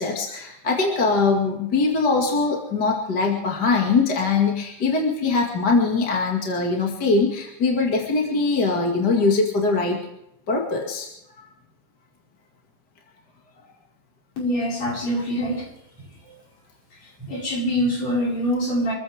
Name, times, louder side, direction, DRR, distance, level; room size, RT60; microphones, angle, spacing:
voice 1, 0.0-10.0 10.5-11.1, left 4 dB, 35° left, -1 dB, 2.4 m, -22 dB
voice 2, 14.4-15.7 16.2-16.4 17.2-18.9, equal, 50° left, -3 dB, 6.6 m, -24 dB
26.5 x 15.0 x 3.6 m, 0.81 s
omnidirectional pair, 3.9 m